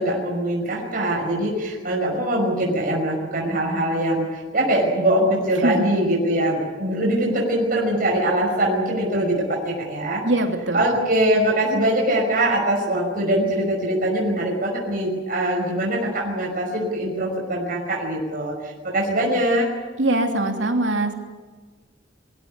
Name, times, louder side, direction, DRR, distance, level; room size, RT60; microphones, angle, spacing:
voice 1, 0.0-10.2 10.7-19.7, right 1 dB, 50° right, -1 dB, 5.6 m, -22 dB
voice 2, 10.2-11.0 20.0-21.1, right 1 dB, 85° right, 3 dB, 3.1 m, -22 dB
24.0 x 16.5 x 9.8 m, 1.4 s
head